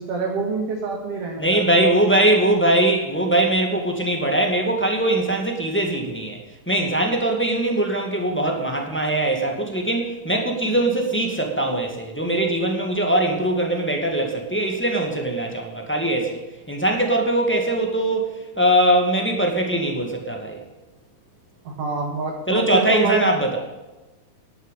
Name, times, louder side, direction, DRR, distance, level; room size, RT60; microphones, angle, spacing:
voice 1, 0.0-1.9 21.6-23.3, right 4 dB, 55° right, -1 dB, 2.7 m, -26 dB
voice 2, 1.4-6.4 6.7-16.4 16.7-20.6 22.5-23.6, right 1 dB, 5° left, 1 dB, 1.5 m, -21 dB
11.0 x 9.2 x 8.4 m, 1.1 s
omnidirectional pair, 3.5 m